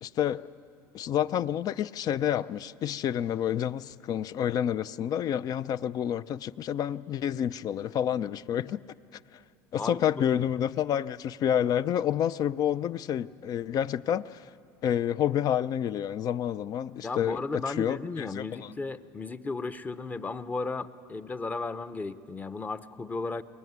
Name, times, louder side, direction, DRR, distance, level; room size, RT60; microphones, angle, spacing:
voice 1, 0.0-0.4 0.9-8.8 9.3-9.4 9.7-14.5 14.8-18.7, left 10 dB, 45° left, 0.6 m, -29 dB
voice 2, 17.0-23.4, left 3 dB, 20° left, 0.9 m, -35 dB
23.0 x 21.0 x 9.5 m
supercardioid pair, 110°, 9 cm